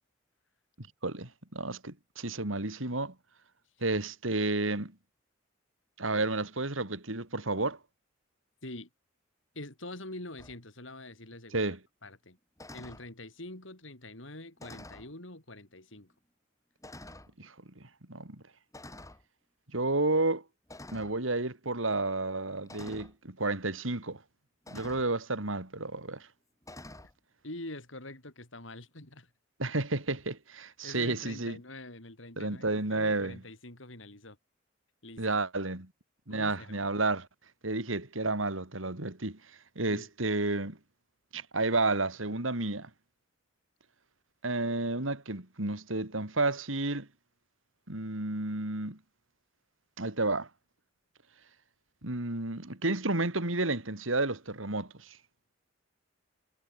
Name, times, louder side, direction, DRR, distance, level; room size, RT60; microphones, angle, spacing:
voice 1, 0.8-3.1 3.8-4.9 6.0-7.8 11.5-11.8 17.4-17.5 17.8-18.4 19.7-20.4 20.9-24.2 24.7-26.3 29.6-31.6 32.4-33.4 35.2-35.9 36.3-37.3 37.6-39.4 39.8-40.8 41.3-42.9 44.4-47.1 47.9-49.0 50.0-50.5 52.0-55.2, right 2 dB, 85° right, 3.4 m, -31 dB
voice 2, 9.5-11.7 12.0-12.4 12.7-16.1 27.4-29.3 30.8-34.4 35.0-35.2 36.3-36.8 39.9-40.1, left 2 dB, 70° left, 5.7 m, -45 dB
sound 1, 10.4-10.6 12.6-13.1 14.6-15.1 16.0-16.1 16.8-17.3 18.7-19.2 20.7-21.2 22.7-23.1 24.7-25.1 26.6-27.1, left 1 dB, 15° left, 7.6 m, -47 dB
head